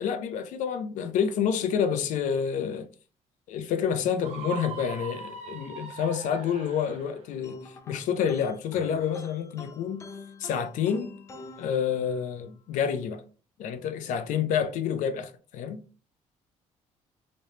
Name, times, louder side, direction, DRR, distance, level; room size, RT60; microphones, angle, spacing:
voice 1, 0.0-2.9 3.5-10.0 10.4-11.1 11.6-13.2 13.6-15.8, left 7 dB, 75° left, 0.6 m, -28 dB
Screaming, 4.2-7.2, right 7 dB, 60° right, 1.0 m, -40 dB
sound 1, 7.4-12.5, left 3 dB, 20° left, 0.3 m, -46 dB
3.2 x 3.0 x 2.7 m
cardioid pair, 135°, 13 cm